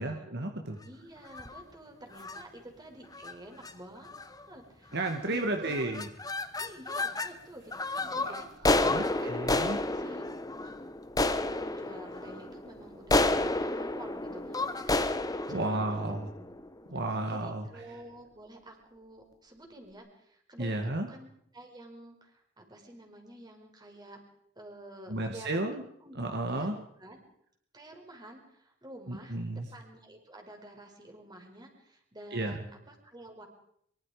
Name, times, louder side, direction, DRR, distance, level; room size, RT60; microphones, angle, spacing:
voice 1, 0.0-0.8 4.9-6.1 8.1-8.3 8.6-9.8 15.5-16.3 16.9-17.7 20.6-21.1 25.1-25.8 26.2-26.8 29.1-29.7 32.3-32.6, right 2 dB, 55° right, 4 dB, 2.1 m, -33 dB
voice 2, 0.8-4.2 4.5-5.0 5.2-5.9 6.6-8.5 8.9-9.3 9.9-10.2 10.6-10.8 11.3-16.5 17.3-20.8 21.1-21.3 21.5-24.2 24.6-25.7 26.0-27.2 27.7-33.5, right 1 dB, 20° right, 2 dB, 5.4 m, -49 dB
sound 1, 1.3-1.6 2.2-2.4 3.1-3.3 3.6-3.7 4.1-4.5 5.0-5.4 5.6-7.3 7.7-16.9, left 2 dB, 20° left, 1.3 m, -31 dB
24.5 x 24.0 x 5.2 m, 0.70 s
head